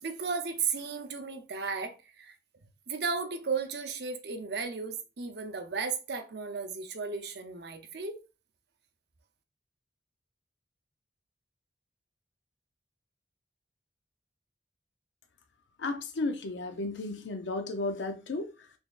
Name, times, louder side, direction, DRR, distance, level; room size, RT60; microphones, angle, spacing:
voice 1, 0.0-2.3 2.9-8.2, right 5 dB, 65° right, 0.7 m, -34 dB
voice 2, 15.8-18.7, left 2 dB, 80° left, 0.5 m, -34 dB
4.0 x 3.4 x 2.4 m
head